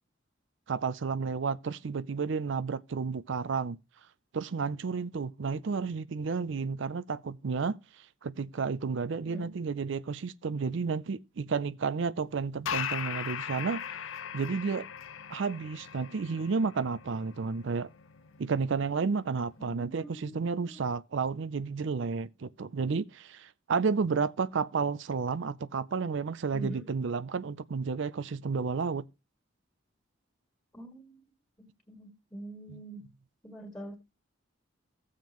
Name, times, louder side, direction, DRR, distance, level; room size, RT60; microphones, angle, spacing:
voice 1, 0.7-3.8 4.3-7.8 8.2-13.8 14.3-14.9 15.3-17.9 18.4-29.1 32.7-32.8, right 5 dB, 60° right, 0.5 m, -31 dB
voice 2, 9.3-9.6 19.7-20.8 26.5-26.9 30.7-31.2 31.6-33.1 33.4-34.0, right 1 dB, 10° left, 1.8 m, -44 dB
sound 1, 12.7-19.7, left 8 dB, 75° left, 0.7 m, -40 dB
15.5 x 7.3 x 3.0 m
head